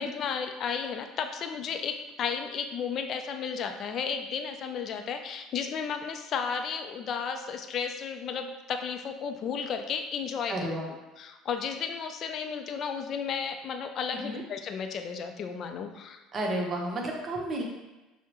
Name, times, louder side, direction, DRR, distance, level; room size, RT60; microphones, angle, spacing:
voice 1, 0.0-10.7 11.2-16.2, left 6 dB, 55° left, 6 dB, 0.4 m, -33 dB
voice 2, 10.5-10.9 14.1-14.4 16.3-17.6, right 1 dB, 35° right, -1 dB, 1.0 m, -32 dB
5.7 x 2.1 x 3.0 m, 1.1 s
hypercardioid pair, 75°, 0 cm